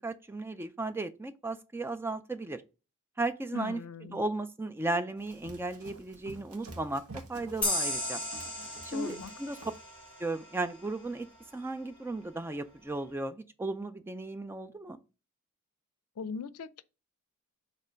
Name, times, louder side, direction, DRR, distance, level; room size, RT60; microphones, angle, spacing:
voice 1, 0.0-2.6 3.2-3.8 4.1-8.2 8.8-9.6 10.2-11.3 11.5-15.0, right 2 dB, 10° right, 0.3 m, -35 dB
voice 2, 3.5-4.2 8.9-9.3 16.2-16.8, left 4 dB, 85° left, 0.4 m, -39 dB
Run, 5.2-9.9, right 2 dB, 80° right, 1.2 m, -50 dB
sound 1, 7.6-11.0, left 1 dB, 5° left, 2.0 m, -35 dB
6.6 x 3.2 x 5.0 m
head